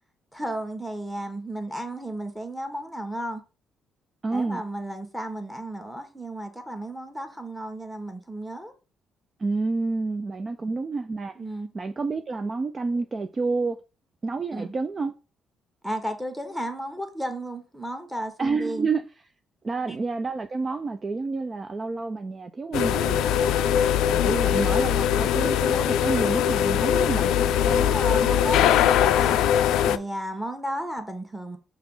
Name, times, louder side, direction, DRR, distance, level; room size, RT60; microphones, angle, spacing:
voice 1, 0.3-3.4 4.3-8.7 11.3-11.7 14.5-14.7 15.8-18.9 19.9-20.0 27.6-29.4 29.8-31.6, right 1 dB, 5° right, 1.4 m, -33 dB
voice 2, 4.2-4.6 9.4-11.4 11.7-13.8 14.2-15.1 18.4-19.0 19.6-23.6 24.1-27.6, right 3 dB, 35° right, 0.5 m, -29 dB
sound 1, 22.7-30.0, left 9 dB, 90° left, 0.3 m, -21 dB
5.8 x 3.0 x 5.5 m
cardioid pair, 90°, 0 cm